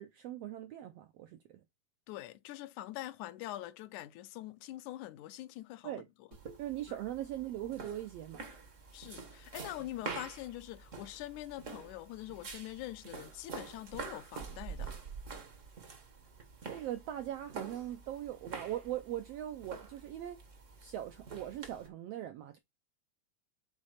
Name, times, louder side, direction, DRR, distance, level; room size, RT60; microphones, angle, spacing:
voice 1, 0.0-1.6 5.8-6.1 6.6-8.5 10.1-10.3 16.7-20.4 20.8-22.6, right 12 dB, 85° right, 1.4 m, -40 dB
voice 2, 2.1-5.9 8.9-15.0, left 15 dB, 80° left, 2.0 m, -44 dB
sound 1, 6.3-21.9, right 5 dB, 60° right, 0.8 m, -47 dB
5.9 x 4.2 x 6.4 m
omnidirectional pair, 3.6 m